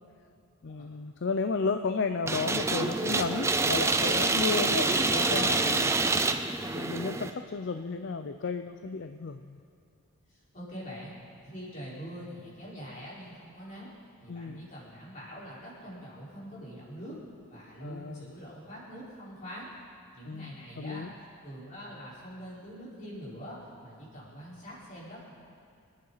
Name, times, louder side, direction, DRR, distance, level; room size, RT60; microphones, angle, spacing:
voice 1, 0.6-5.9 6.6-9.6 14.3-14.7 17.8-18.3 20.2-21.1, left 4 dB, 55° left, 8 dB, 0.5 m, -33 dB
sound 1, 2.3-7.3, right 3 dB, 10° right, 0.4 m, -27 dB
voice 2, 10.3-11.2 11.4-13.9 14.2-17.2 17.5-19.7 20.1-21.1 21.4-25.3, equal, 35° left, -7 dB, 4.4 m, -44 dB
26.5 x 9.8 x 4.0 m, 2.3 s
head